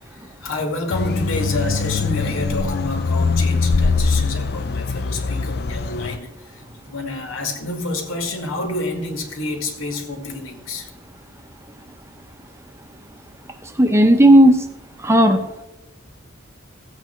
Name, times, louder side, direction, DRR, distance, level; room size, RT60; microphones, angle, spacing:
voice 1, 0.0-10.9, left 2 dB, 80° left, 2.2 m, -28 dB
sound 1, 0.9-6.2, left 4 dB, 55° left, 0.6 m, -22 dB
voice 2, 13.8-14.6 15.0-15.6, right 1 dB, 15° right, 0.9 m, -13 dB
15.5 x 8.0 x 4.5 m
head